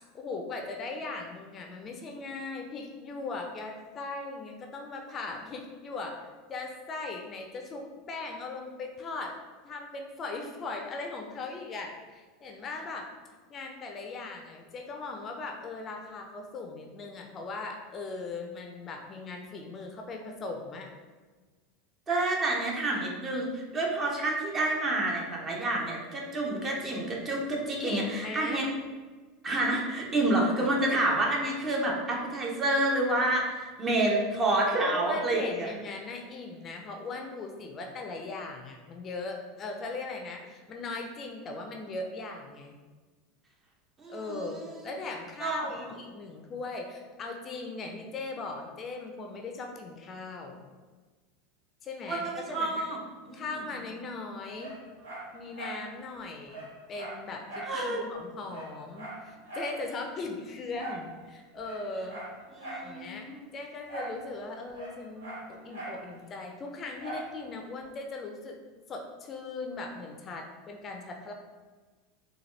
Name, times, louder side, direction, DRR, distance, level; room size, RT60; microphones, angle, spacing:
voice 1, 0.1-6.2 6.5-9.4 9.6-13.1 13.5-20.9 27.8-28.6 34.8-42.8 44.1-50.6 51.8-52.9 53.3-54.8 55.3-62.2 62.8-68.6 68.9-71.3, left 3 dB, 35° left, 3 dB, 0.5 m, -39 dB
voice 2, 22.1-28.7 29.4-35.7 44.0-44.8 45.4-45.8 52.1-53.0 53.3-53.4 57.6-58.0 62.5-63.4, right 2 dB, 30° right, -2 dB, 0.9 m, -29 dB
Dog, 54.6-55.8 56.2-56.3 56.5-57.8 58.1-58.2 58.5-59.8 60.7-61.1 61.6-62.9 63.9-64.2 64.5-66.0 67.0-67.3 67.8-67.9, right 2 dB, 85° right, 1.1 m, -41 dB
4.1 x 2.3 x 3.2 m, 1.4 s
hypercardioid pair, 85°, 0 cm